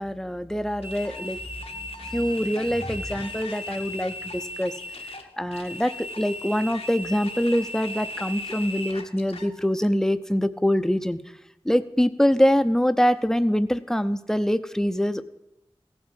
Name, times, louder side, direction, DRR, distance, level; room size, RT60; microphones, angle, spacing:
voice 1, 0.0-1.4 1.8-4.7 5.4-11.2 11.6-15.2, equal, 5° left, 12 dB, 0.6 m, -24 dB
sound 1, 0.8-9.5, left 1 dB, 80° left, 1.3 m, -37 dB
16.5 x 6.1 x 7.5 m, 0.91 s
wide cardioid pair, 70°, 10 cm